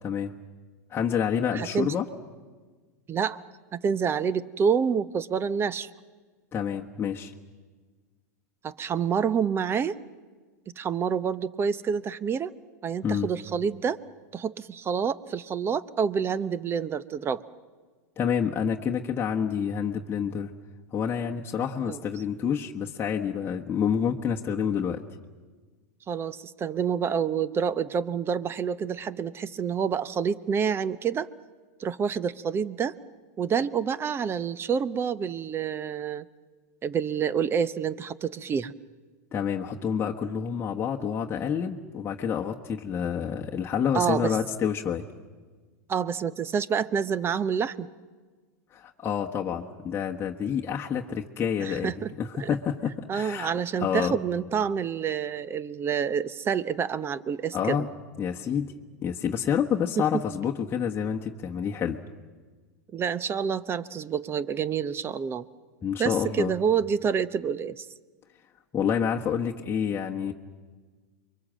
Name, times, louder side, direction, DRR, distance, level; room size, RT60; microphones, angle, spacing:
voice 1, 0.0-0.3 0.9-2.1 6.5-7.3 13.0-13.3 18.2-20.5 20.9-25.0 39.3-45.1 48.7-53.5 53.8-54.2 57.5-57.9 58.2-58.7 59.0-62.0 65.8-66.5 68.7-70.3, left 7 dB, 25° left, -1 dB, 1.3 m, -28 dB
voice 2, 1.5-1.9 3.1-3.4 3.7-5.9 8.6-10.0 10.8-12.5 12.8-14.0 14.3-17.4 21.9-22.0 26.1-31.3 31.8-32.9 33.4-36.2 36.8-38.7 43.9-44.4 45.9-47.9 51.6-52.5 53.1-57.8 60.0-60.2 62.9-65.4 66.0-67.8, right 7 dB, 25° right, 17 dB, 0.9 m, -28 dB
29.5 x 23.0 x 7.5 m, 1.4 s
hypercardioid pair, 105°, 9 cm